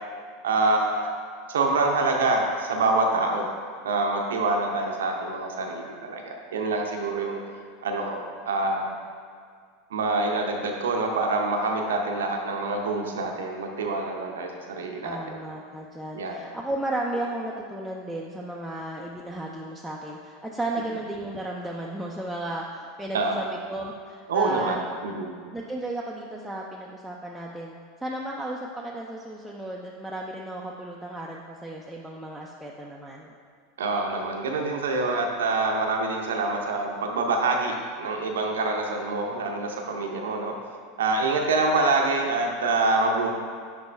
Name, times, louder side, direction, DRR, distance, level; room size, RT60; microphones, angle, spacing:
voice 1, 0.4-1.0 1.5-3.5 3.8-7.4 7.8-8.2 8.5-9.0 9.9-15.2 16.1-16.4 23.1-23.5 24.3-25.3 33.8-40.5 41.0-43.3, right 3 dB, 75° right, 2 dB, 0.6 m, -26 dB
voice 2, 15.0-24.8 25.5-33.3, right 1 dB, 5° right, -3 dB, 0.5 m, -34 dB
6.1 x 5.1 x 3.2 m, 2.1 s
figure-of-eight pair, 85°, 0 cm